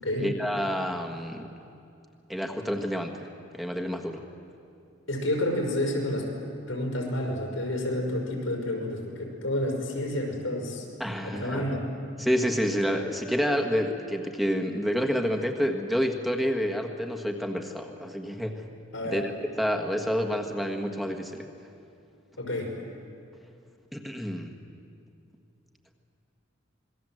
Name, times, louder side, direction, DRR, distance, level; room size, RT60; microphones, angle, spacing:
voice 1, 0.2-1.5 2.3-3.3 3.5-4.2 11.0-11.7 12.2-18.6 19.0-21.5 23.9-24.5, equal, ahead, 3 dB, 1.6 m, -29 dB
voice 2, 5.1-6.3 6.7-10.9 11.2-11.9 18.9-19.2 22.4-22.7, left 1 dB, 85° left, 0 dB, 5.6 m, -29 dB
27.0 x 21.0 x 7.8 m, 2.6 s
head